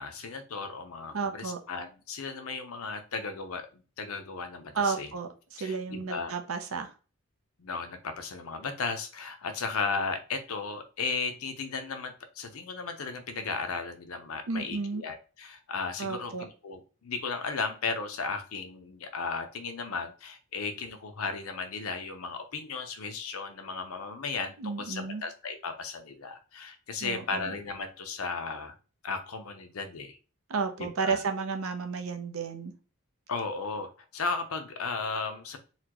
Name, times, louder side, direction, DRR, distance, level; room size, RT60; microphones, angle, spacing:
voice 1, 0.0-5.1 5.6-6.3 7.6-28.7 29.0-30.2 30.8-31.2 33.3-35.6, left 4 dB, 80° left, 7 dB, 0.7 m, -35 dB
voice 2, 1.1-1.6 4.7-6.9 14.5-15.0 16.0-16.4 24.6-25.2 27.0-27.5 30.5-32.7, right 5 dB, 75° right, 6 dB, 0.7 m, -32 dB
4.1 x 2.2 x 2.9 m, 0.34 s
head